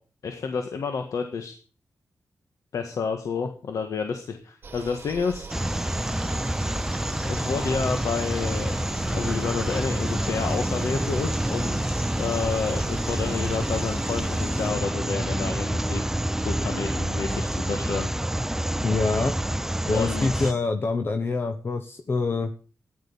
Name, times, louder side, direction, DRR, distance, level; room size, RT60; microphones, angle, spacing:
voice 1, 0.2-1.5 2.7-5.5 7.3-8.8 9.1-16.0 16.4-18.1 19.9-20.6, left 5 dB, 80° left, 6 dB, 1.7 m, -30 dB
sound 1, 4.6-14.7, right 4 dB, 40° right, 1.8 m, -41 dB
sound 2, 5.5-20.5, right 1 dB, 5° right, 0.6 m, -27 dB
voice 2, 18.8-19.3 19.9-22.5, left 3 dB, 40° left, 7 dB, 1.2 m, -25 dB
14.0 x 10.5 x 7.1 m, 0.40 s
wide cardioid pair, 115°, 6 cm